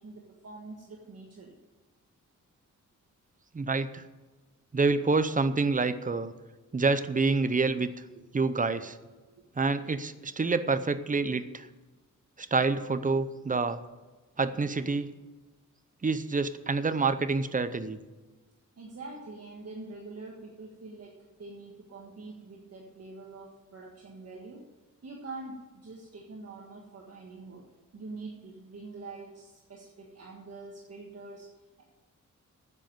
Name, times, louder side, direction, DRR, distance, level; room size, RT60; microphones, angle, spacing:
voice 1, 0.0-1.5 9.3-9.4 18.8-24.6 25.0-27.6 27.9-31.5, right 3 dB, 50° right, -2 dB, 1.6 m, -45 dB
voice 2, 3.5-4.0 4.7-6.3 6.7-7.9 8.3-9.0 9.6-11.7 12.4-13.8 14.4-15.1 16.0-18.0, right 4 dB, 25° right, 12 dB, 0.6 m, -27 dB
9.5 x 7.7 x 9.2 m, 1.2 s
wide cardioid pair, 150°, 31 cm